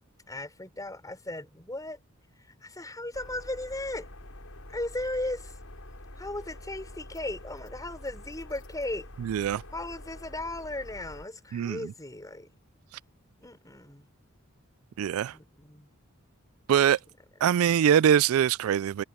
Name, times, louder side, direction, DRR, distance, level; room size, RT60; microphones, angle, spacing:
voice 1, 0.3-2.0 2.6-4.1 4.7-5.5 6.2-9.1 9.7-12.5 13.4-14.1 15.3-15.9, left 1 dB, 15° left, 4.8 m, -36 dB
sound 1, 3.1-11.3, left 1 dB, 75° left, 5.3 m, -46 dB
voice 2, 9.2-9.6 11.5-11.9 15.0-15.3 16.7-17.0 17.4-19.0, right 9 dB, 75° right, 0.3 m, -23 dB
head